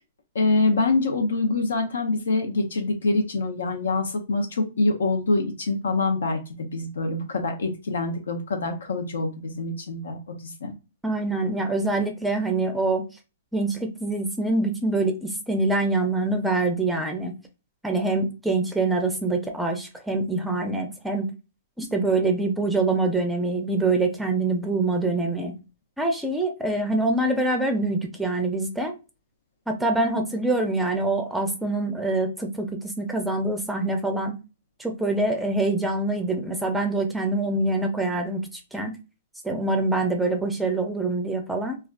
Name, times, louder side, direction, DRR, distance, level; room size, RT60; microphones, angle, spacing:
voice 1, 0.3-10.7, left 3 dB, 85° left, 4 dB, 0.6 m, -25 dB
voice 2, 11.0-13.0 13.5-17.3 17.8-21.3 21.8-25.5 26.0-28.9 29.7-34.4 34.8-38.4 38.7-38.9 39.4-41.8, right 2 dB, 5° right, 4 dB, 0.4 m, -25 dB
3.3 x 2.3 x 2.3 m, 0.29 s
hypercardioid pair, 135°, 0 cm